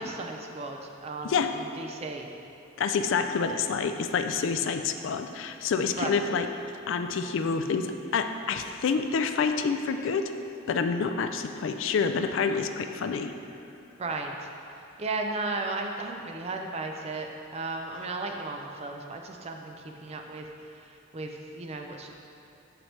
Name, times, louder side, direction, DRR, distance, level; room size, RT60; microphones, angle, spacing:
voice 1, 0.0-2.3 5.9-6.2 14.0-14.5 15.0-22.1, right 3 dB, 30° right, 3 dB, 0.4 m, -35 dB
voice 2, 2.8-6.5 6.9-10.3 10.7-13.3, left 5 dB, 60° left, 8 dB, 0.3 m, -28 dB
6.7 x 5.9 x 3.2 m, 2.7 s
head